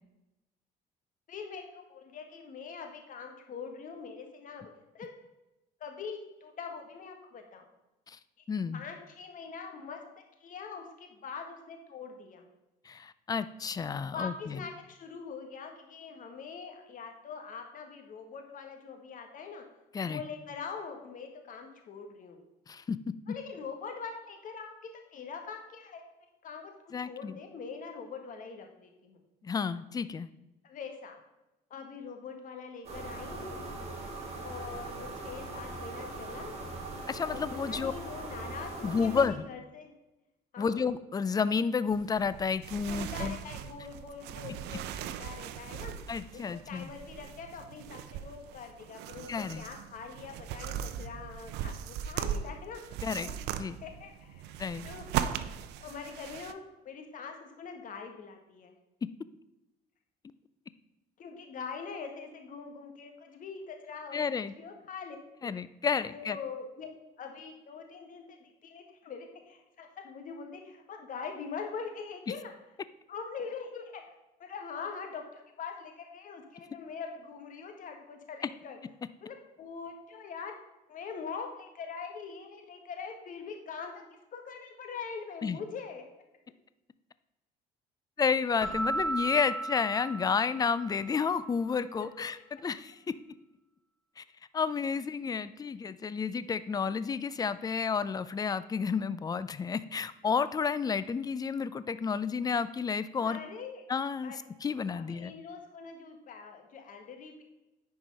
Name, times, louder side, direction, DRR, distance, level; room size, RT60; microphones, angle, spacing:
voice 1, 1.3-5.1 5.8-7.7 8.7-10.0 10.4-12.4 14.1-19.6 20.0-22.4 23.3-24.8 25.1-26.0 26.4-29.2 30.6-31.2 31.7-33.6 34.4-36.6 37.2-37.4 37.7-39.9 40.5-40.8 42.8-45.9 46.3-53.4 53.8-54.5 54.8-55.3 55.8-56.6 56.8-58.7 61.2-65.5 66.1-66.9 67.2-72.5 73.1-74.0 74.4-78.8 79.2-80.5 80.9-84.1 84.3-86.0 92.0-92.1 103.2-103.9 104.2-104.4 104.9-107.4, left 5 dB, 50° left, 4 dB, 1.7 m, -43 dB
voice 2, 8.5-8.8 12.9-14.6 19.9-20.2 22.7-23.0 26.9-27.4 29.4-30.3 37.1-37.9 38.8-39.5 40.6-43.4 46.1-46.9 49.3-49.7 53.0-53.3 53.6-53.8 54.6-54.9 64.1-64.5 65.4-66.4 85.4-85.6 88.2-92.4 92.6-93.1 94.2-94.3 94.5-103.4 103.9-104.3 104.6-105.3, left 5 dB, 20° left, 15 dB, 0.4 m, -31 dB
sound 1, 32.8-39.3, right 2 dB, 40° right, 2.4 m, -41 dB
sound 2, 41.9-56.5, right 10 dB, 85° right, 0.6 m, -39 dB
Keyboard (musical), 88.6-91.0, right 2 dB, ahead, 1.5 m, -34 dB
10.0 x 4.8 x 5.4 m, 0.97 s
cardioid pair, 110°, 17 cm